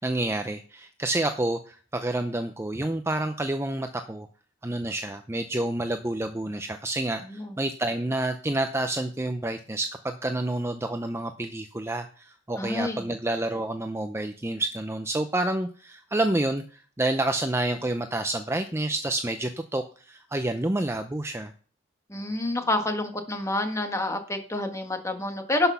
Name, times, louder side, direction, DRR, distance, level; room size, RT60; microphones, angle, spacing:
voice 1, 0.0-4.3 4.6-16.6 17.0-21.5, right 1 dB, 15° right, 7 dB, 0.5 m, -29 dB
voice 2, 7.2-7.6 12.6-13.1 22.1-25.7, left 2 dB, 15° left, 5 dB, 1.5 m, -28 dB
11.0 x 6.0 x 5.6 m, 0.40 s
head